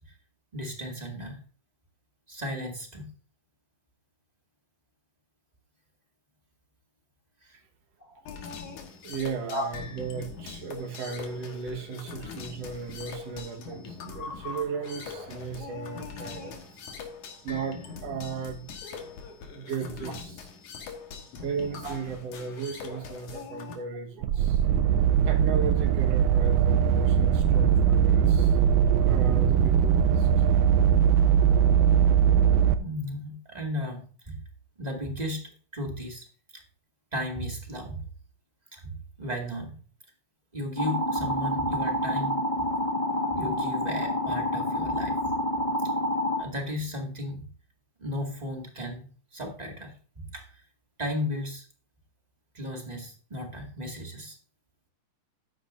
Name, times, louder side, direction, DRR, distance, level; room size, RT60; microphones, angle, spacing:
voice 1, 0.5-1.4 2.3-3.1 7.4-7.6 8.0-8.2 9.5-9.7 21.8-22.0 32.6-34.4 34.8-36.3 36.5-36.6 37.1-38.0 38.7-39.8 40.5-42.7 43.3-45.2 45.6-45.7 46.4-47.5 48.0-50.6 51.0-51.6 52.5-54.4, left 1 dB, 15° right, 1 dB, 1.7 m, -35 dB
sound 1, 8.3-23.7, left 5 dB, 85° left, 3.0 m, -42 dB
voice 2, 9.0-17.2 17.4-18.8 19.4-20.3 21.4-24.6 25.3-28.6 29.0-30.3, right 6 dB, 60° right, 3 dB, 2.5 m, -36 dB
sound 2, 24.2-32.7, right 8 dB, 85° right, 2.1 m, -21 dB
sound 3, 40.8-46.4, equal, 15° left, 1.5 m, -28 dB
13.0 x 9.7 x 2.6 m, 0.42 s
omnidirectional pair, 3.4 m